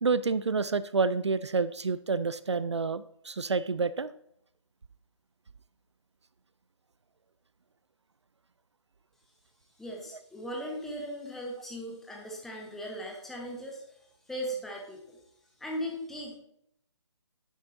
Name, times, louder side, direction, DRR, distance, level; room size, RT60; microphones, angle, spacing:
voice 1, 0.0-4.1, right 4 dB, 65° right, 15 dB, 0.4 m, -28 dB
voice 2, 9.8-15.2 15.6-16.4, equal, ahead, -1 dB, 0.6 m, -38 dB
10.0 x 6.3 x 2.9 m, 0.74 s
figure-of-eight pair, 145°, 16 cm